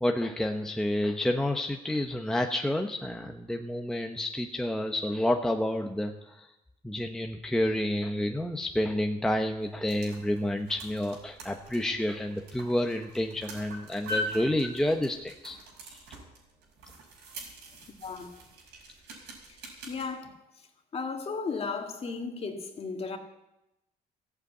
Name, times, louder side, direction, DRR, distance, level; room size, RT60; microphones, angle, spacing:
voice 1, 0.0-6.5 6.8-15.6, left 1 dB, 5° left, 0.8 m, -29 dB
sound 1, 9.6-20.1, left 1 dB, 85° right, 5.3 m, -42 dB
voice 2, 19.9-20.3 20.9-23.2, left 4 dB, 35° left, 1.9 m, -34 dB
14.5 x 8.2 x 8.3 m
cardioid pair, 110°, 17 cm